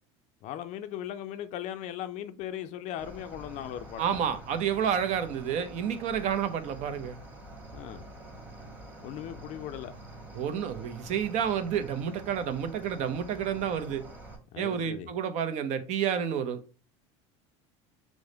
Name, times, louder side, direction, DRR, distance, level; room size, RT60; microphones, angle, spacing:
voice 1, 0.4-4.2 7.7-8.0 9.0-9.9 14.5-15.1, left 11 dB, 55° left, 0.4 m, -38 dB
Cricket, 3.0-14.4, right 2 dB, 10° right, 1.1 m, -47 dB
voice 2, 4.0-7.2 10.3-14.0 14.6-16.6, right 8 dB, 50° right, 0.6 m, -30 dB
4.8 x 2.1 x 3.9 m
supercardioid pair, 100°, 15 cm